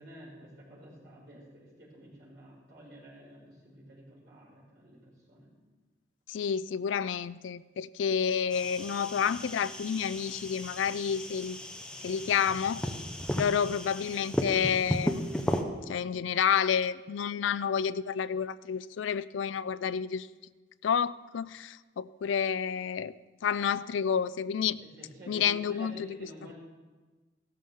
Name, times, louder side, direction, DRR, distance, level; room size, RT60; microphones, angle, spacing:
voice 1, 0.0-5.5 24.8-26.5, equal, 70° right, -7 dB, 5.3 m, -50 dB
voice 2, 6.3-11.6 12.0-12.8 13.4-15.2 15.9-20.3 20.8-23.1 23.4-24.8 25.3-26.1, left 7 dB, 85° left, 16 dB, 0.4 m, -29 dB
sound 1, 8.5-15.6, equal, 5° left, 0.7 m, -35 dB
15.5 x 13.0 x 3.7 m, 1.3 s
head